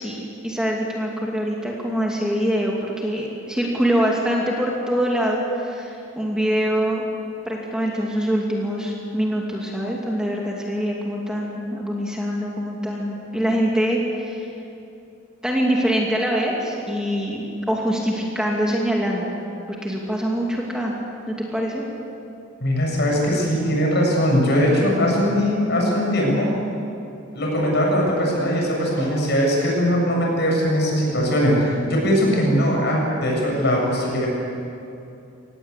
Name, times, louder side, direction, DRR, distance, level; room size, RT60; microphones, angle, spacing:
voice 1, 0.0-7.1 7.5-14.5 15.4-19.3 19.7-20.9 21.3-21.8, equal, 5° right, -2 dB, 2.6 m, -24 dB
voice 2, 22.6-26.5 27.3-34.3, equal, 55° left, -1 dB, 7.7 m, -20 dB
25.5 x 19.0 x 8.3 m, 2.7 s
head